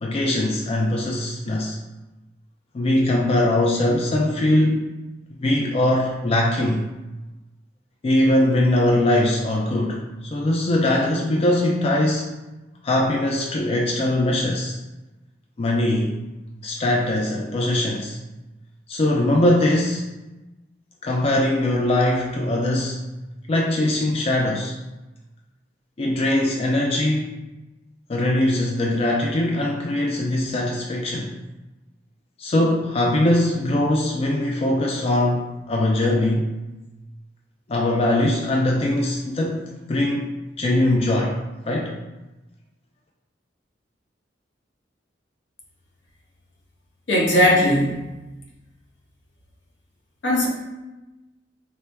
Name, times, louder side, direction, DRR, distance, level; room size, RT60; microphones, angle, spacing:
voice 1, 0.0-1.8 2.7-4.9 5.4-6.8 8.0-12.4 12.8-14.8 15.6-16.2 16.6-18.2 18.9-20.1 21.0-23.0 23.5-24.7 26.0-27.3 28.1-31.3 32.4-36.5 37.7-39.6 39.9-40.3 40.6-41.4 41.7-41.9, left 1 dB, 35° left, -1 dB, 0.3 m, -21 dB
voice 2, 47.1-48.0 50.2-50.5, equal, 80° left, -3 dB, 1.0 m, -18 dB
4.3 x 2.1 x 3.3 m, 1.1 s
head